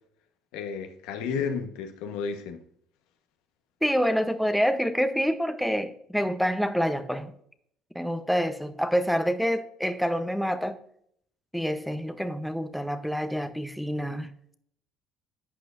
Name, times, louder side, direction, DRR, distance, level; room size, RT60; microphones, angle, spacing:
voice 1, 0.5-2.6, left 6 dB, 85° left, 1.1 m, -32 dB
voice 2, 3.8-7.3 7.9-10.8 11.5-14.3, equal, ahead, 0.7 m, -27 dB
11.5 x 8.2 x 2.6 m
supercardioid pair, 100°, 0 cm